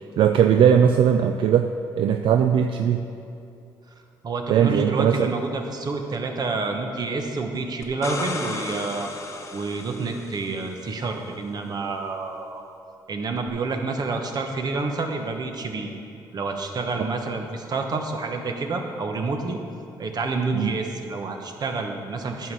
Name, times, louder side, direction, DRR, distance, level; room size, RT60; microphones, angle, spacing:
voice 1, 0.2-3.1 4.5-5.3 17.0-17.1 20.5-20.7, right 8 dB, 70° right, 6 dB, 0.4 m, -19 dB
voice 2, 4.2-9.1 9.5-12.6 13.1-15.9 16.3-19.6 20.0-22.5, right 3 dB, 50° right, 4 dB, 1.1 m, -28 dB
sound 1, 7.8-10.6 13.5-13.6, left 3 dB, 35° left, 0.9 m, -34 dB
10.5 x 4.7 x 6.8 m, 2.6 s
cardioid pair, 85°, 9 cm